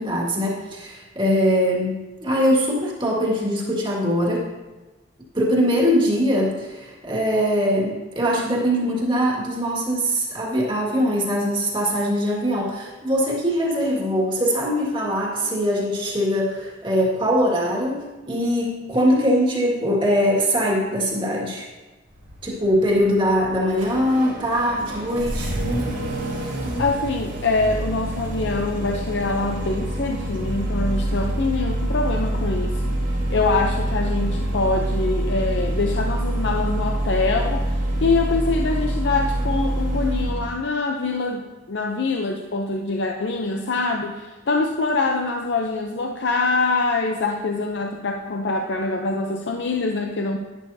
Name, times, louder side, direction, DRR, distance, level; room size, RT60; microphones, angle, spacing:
voice 1, 0.0-4.5 5.3-21.7 22.4-25.5, equal, 25° right, -3 dB, 1.9 m, -22 dB
Engine starting, 22.1-40.5, right 1 dB, 75° right, 3.2 m, -26 dB
voice 2, 26.8-32.9 33.3-50.4, left 3 dB, 70° left, 2 dB, 0.6 m, -24 dB
11.0 x 10.5 x 2.7 m, 1.2 s
head